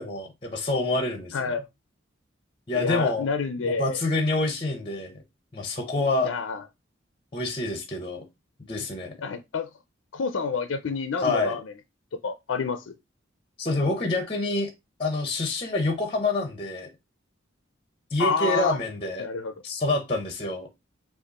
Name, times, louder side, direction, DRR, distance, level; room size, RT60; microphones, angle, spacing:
voice 1, 0.0-1.4 2.7-3.3 3.6-5.1 5.5-6.3 7.3-8.2 8.7-9.1 11.2-11.5 13.6-14.7 15.0-16.9 18.1-19.3 19.6-20.7, left 2 dB, 25° left, 0.8 m, -27 dB
voice 2, 1.3-1.7 2.7-4.0 6.2-6.6 8.8-8.9 9.2-9.7 10.1-11.6 12.2-13.0 18.2-18.8 19.2-19.5, left 5 dB, 85° left, 0.5 m, -28 dB
5.1 x 2.5 x 4.0 m
head